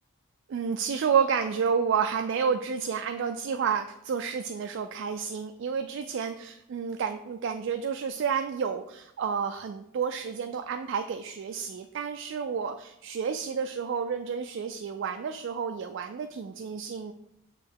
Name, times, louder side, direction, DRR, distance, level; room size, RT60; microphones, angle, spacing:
voice 1, 0.5-17.1, right 6 dB, 60° right, 6 dB, 0.3 m, -30 dB
6.7 x 3.0 x 4.5 m, 0.81 s
head